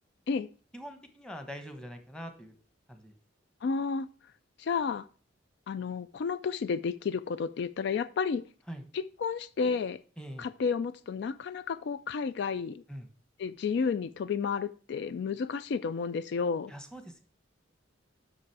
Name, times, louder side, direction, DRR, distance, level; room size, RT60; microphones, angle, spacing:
voice 1, 0.7-2.6 2.9-3.1 8.7-8.8 10.2-10.5 12.9-13.1 16.7-17.2, equal, 5° left, 1.0 m, -43 dB
voice 2, 3.6-4.1 4.6-5.0 5.7-8.4 8.9-10.0 10.4-12.8 13.4-16.7, left 5 dB, 65° left, 0.3 m, -31 dB
7.3 x 6.1 x 4.7 m
head